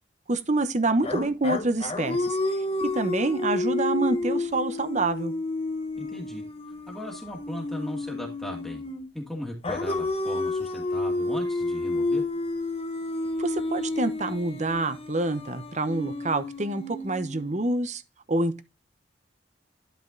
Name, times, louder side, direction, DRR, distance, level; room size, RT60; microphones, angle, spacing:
voice 1, 0.3-2.4 2.8-5.3 13.4-18.0 18.3-18.6, right 2 dB, 40° right, 1.0 m, -27 dB
sound 1, 1.0-9.1 9.6-17.7, left 2 dB, 35° left, 1.2 m, -30 dB
voice 2, 6.0-6.4 6.9-8.8 9.1-12.2, left 1 dB, ahead, 2.3 m, -37 dB
12.0 x 4.9 x 3.9 m
head